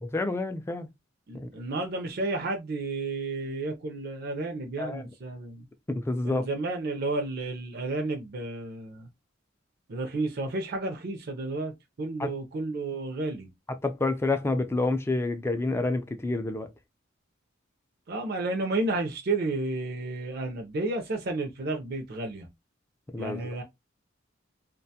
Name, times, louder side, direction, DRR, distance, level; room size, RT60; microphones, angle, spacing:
voice 1, 0.0-0.9 1.3-1.5 4.8-5.0 5.9-6.5 12.2-12.3 13.8-16.7 23.1-23.5, left 2 dB, 15° left, 0.3 m, -28 dB
voice 2, 1.3-5.7 6.2-9.1 9.9-11.7 12.0-13.5 18.1-22.5 23.2-23.6, right 2 dB, 50° right, 0.5 m, -31 dB
2.4 x 2.2 x 2.7 m
head